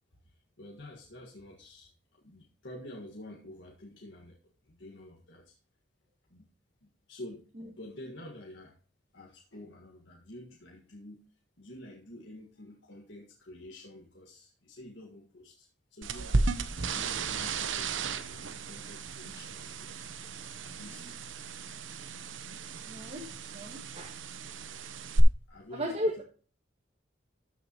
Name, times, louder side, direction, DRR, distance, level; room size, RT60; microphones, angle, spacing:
voice 1, 0.2-4.4 4.6-5.5 6.3-6.5 6.8-8.8 9.1-11.2 11.6-16.6 16.8-20.2 20.6-21.2 25.5-26.2, left 1 dB, 70° left, -1 dB, 1.7 m, -49 dB
sound 1, 16.0-25.2, right 4 dB, 90° right, 0.9 m, -35 dB
voice 2, 20.7-21.1 22.8-24.2 25.7-26.2, equal, 30° right, -1 dB, 1.6 m, -36 dB
13.5 x 6.3 x 2.9 m, 0.38 s
head